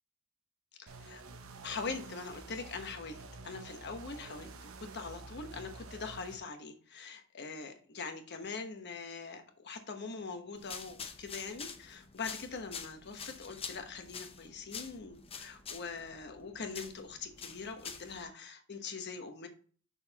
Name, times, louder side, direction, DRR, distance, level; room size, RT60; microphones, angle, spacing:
voice 1, 0.8-1.2 1.6-3.2 3.4-19.5, left 4 dB, 55° left, 6 dB, 1.1 m, -43 dB
sound 1, 0.9-6.4, right 3 dB, 85° right, 0.9 m, -49 dB
sound 2, 10.6-18.2, left 6 dB, 30° left, 0.7 m, -47 dB
6.8 x 6.4 x 2.9 m, 0.42 s
head